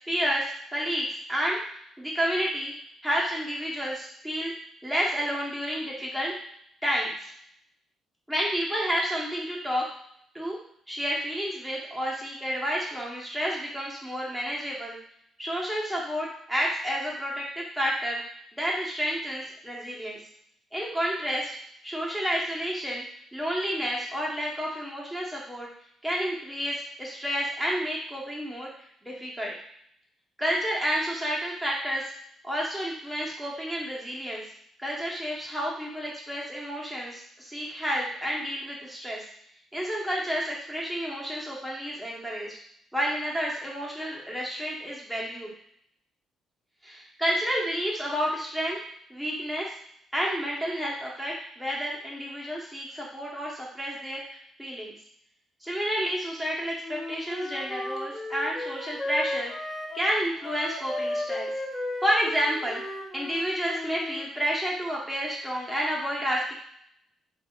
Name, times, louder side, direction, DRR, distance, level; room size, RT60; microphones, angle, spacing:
voice 1, 0.1-0.5 0.7-1.6 2.0-2.7 3.0-4.5 4.8-6.3 6.8-7.1 8.3-9.8 10.3-10.6 10.9-15.0 15.4-18.2 18.6-20.2 20.7-21.5 21.8-23.0 23.3-25.7 26.0-28.7 29.0-29.5 30.4-32.1 32.4-34.4 34.8-39.2 39.7-42.6 42.9-45.5 46.8-48.8 49.1-49.7 50.1-54.2 54.6-54.9 55.6-59.5 59.9-61.5 62.0-62.8 63.1-66.5, equal, 5° right, -4 dB, 1.0 m, -30 dB
Wind instrument woodwind instrument, 56.8-64.3, left 1 dB, 20° left, 0.5 m, -35 dB
3.4 x 2.5 x 2.4 m, 0.67 s
cardioid pair, 90°, 0 cm